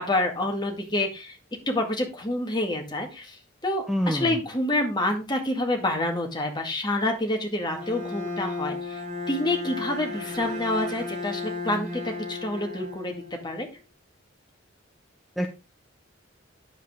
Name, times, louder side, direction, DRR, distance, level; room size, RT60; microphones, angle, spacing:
voice 1, 0.0-1.4 1.7-13.7, left 1 dB, 25° left, 2 dB, 2.1 m, -28 dB
voice 2, 3.9-4.4 15.4-15.5, equal, ahead, 3 dB, 0.9 m, -26 dB
Bowed string instrument, 7.7-13.7, left 3 dB, 40° right, 3.7 m, -34 dB
9.3 x 7.8 x 3.6 m, 0.28 s
head